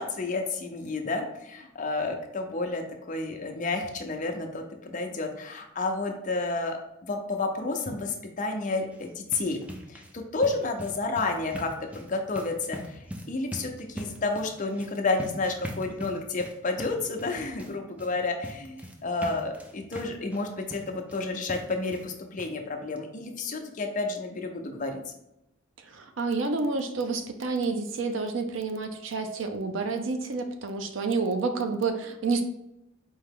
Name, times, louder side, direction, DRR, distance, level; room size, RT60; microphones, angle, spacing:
voice 1, 0.0-9.6 9.9-25.0, left 3 dB, 40° left, 3 dB, 0.6 m, -31 dB
sound 1, 8.8-22.1 22.4-22.5 23.0-23.1 23.4-23.5, equal, 5° right, 0.4 m, -42 dB
voice 2, 25.8-32.4, right 4 dB, 70° right, 7 dB, 0.5 m, -29 dB
4.5 x 2.8 x 3.6 m, 0.86 s
head